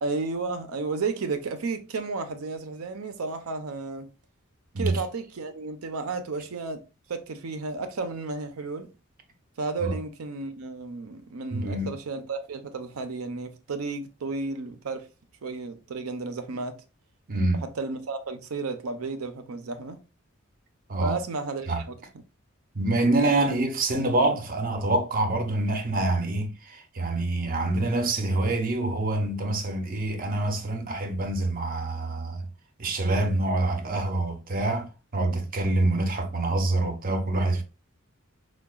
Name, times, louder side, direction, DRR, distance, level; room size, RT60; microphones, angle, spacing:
voice 1, 0.0-4.1 4.8-6.8 7.1-8.9 9.6-15.1 15.4-16.8 17.8-20.0 21.0-21.8 23.4-23.6, right 3 dB, 90° right, 0.6 m, -32 dB
voice 2, 11.5-12.0 17.3-17.7 20.9-21.2 21.7-21.8 22.7-32.5 32.8-37.6, right 2 dB, 40° right, 0.6 m, -26 dB
4.5 x 2.3 x 2.3 m
head